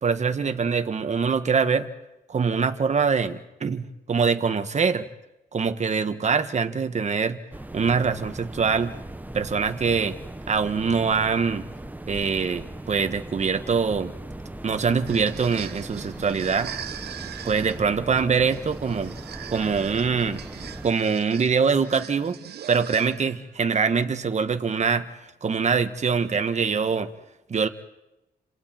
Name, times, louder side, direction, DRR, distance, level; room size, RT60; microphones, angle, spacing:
voice 1, 0.0-1.9 2.3-5.1 5.5-7.4 7.7-8.9 9.3-10.2 10.5-11.7 12.1-14.2 14.6-16.7 17.4-19.1 19.5-20.4 20.8-22.4 22.7-25.1 25.4-27.1 27.5-27.7, right 5 dB, 45° right, 8 dB, 1.6 m, -24 dB
sound 1, 7.5-20.9, right 1 dB, 10° right, 1.2 m, -39 dB
sound 2, 14.8-23.5, right 10 dB, 80° right, 1.0 m, -41 dB
29.5 x 27.0 x 4.6 m, 0.93 s
cardioid pair, 95°, 17 cm